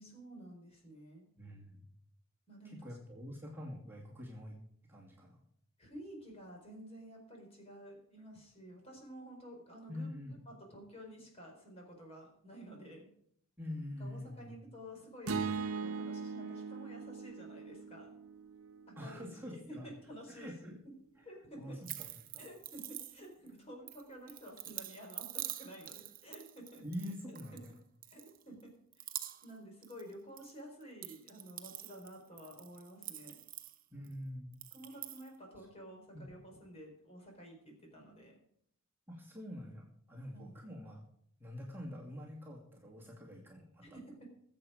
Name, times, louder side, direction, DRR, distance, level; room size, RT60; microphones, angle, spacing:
voice 1, 0.0-1.2 2.5-3.0 5.8-13.1 14.0-18.1 18.9-21.0 21.2-21.8 22.4-26.8 27.5-27.6 28.1-28.7 29.4-33.4 34.7-38.4 40.3-40.6 43.8-44.3, equal, 30° left, 0 dB, 4.5 m, -51 dB
voice 2, 1.4-1.8 2.6-4.6 4.8-5.4 9.9-10.4 13.6-14.5 19.0-19.9 20.3-20.8 21.6-22.1 22.3-22.4 26.8-27.7 33.9-34.5 36.1-36.2 39.1-41.0 41.4-43.8, left 1 dB, 10° right, -3 dB, 2.4 m, -45 dB
sound 1, 15.3-19.5, right 5 dB, 80° right, 1.0 m, -40 dB
sound 2, 21.9-23.5 23.9-27.7 28.0-28.6 28.9-29.6 29.8-30.5 30.8-34.1 34.5-35.3, right 13 dB, 40° right, 0.8 m, -46 dB
20.5 x 7.9 x 5.1 m, 0.67 s
head